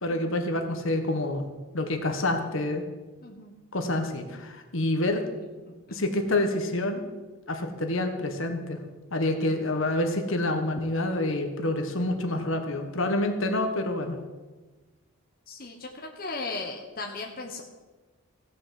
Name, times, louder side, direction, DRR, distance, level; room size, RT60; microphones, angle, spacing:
voice 1, 0.0-1.4 1.7-2.8 3.7-5.2 5.9-7.0 7.5-8.8 9.1-14.2, left 1 dB, 60° left, 6 dB, 1.5 m, -27 dB
voice 2, 3.2-3.6 5.7-6.0 15.5-17.6, left 3 dB, 40° left, 1 dB, 1.3 m, -37 dB
15.5 x 6.4 x 7.7 m, 1.2 s
head